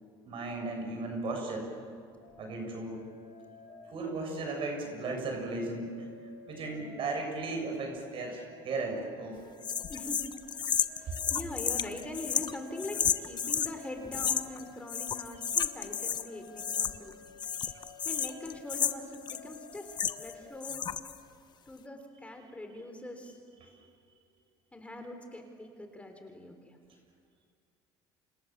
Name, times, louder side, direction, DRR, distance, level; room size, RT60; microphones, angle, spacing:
voice 1, 0.3-1.7 2.4-3.0 3.9-5.9 6.5-9.4 17.6-17.7, right 3 dB, 55° right, 2 dB, 7.0 m, -36 dB
sound 1, 2.2-20.8, left 4 dB, 85° left, 7.4 m, -53 dB
sound 2, 9.6-13.7 14.1-14.6 14.9-16.3 16.6-17.1 17.4-20.3 20.6-21.2, left 8 dB, 40° left, 1.2 m, -32 dB
voice 2, 9.9-10.3 10.6-17.1 17.6-20.8 21.7-23.4 24.7-26.8, left 1 dB, 10° left, 5 dB, 3.9 m, -43 dB
29.5 x 26.5 x 7.4 m, 2.2 s
supercardioid pair, 100°, 11 cm